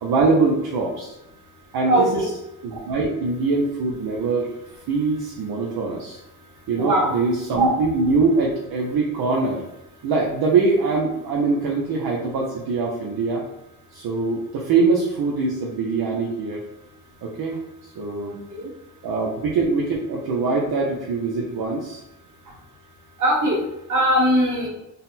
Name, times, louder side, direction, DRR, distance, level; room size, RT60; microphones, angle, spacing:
voice 1, 0.0-1.1 1.7-2.1 2.6-4.5 4.9-6.2 6.7-9.6 10.0-13.4 13.9-16.6 17.2-17.6 18.0-18.3 19.0-22.0, right 3 dB, 65° right, -2 dB, 0.7 m, -23 dB
voice 2, 1.8-2.3 6.8-7.2 18.3-18.7 23.2-23.6 23.9-24.7, equal, 50° right, -1 dB, 1.3 m, -20 dB
4.0 x 2.1 x 4.0 m, 0.91 s
cardioid pair, 95°, 39 cm